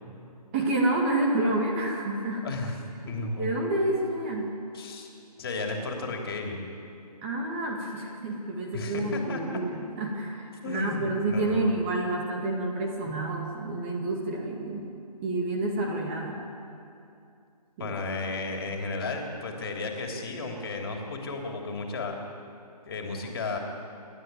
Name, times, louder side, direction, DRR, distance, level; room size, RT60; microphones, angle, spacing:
voice 1, 0.5-2.4 3.1-4.5 7.2-14.9 15.2-16.4 17.8-17.9, right 2 dB, 20° right, 0 dB, 2.0 m, -29 dB
voice 2, 2.4-2.8 3.1-3.5 4.7-5.1 5.4-6.6 8.7-9.6 10.6-11.7 13.0-13.1 17.8-22.2 22.8-23.6, left 3 dB, 35° left, 2 dB, 3.1 m, -33 dB
28.5 x 13.0 x 9.1 m, 2.6 s
figure-of-eight pair, 160°, 21 cm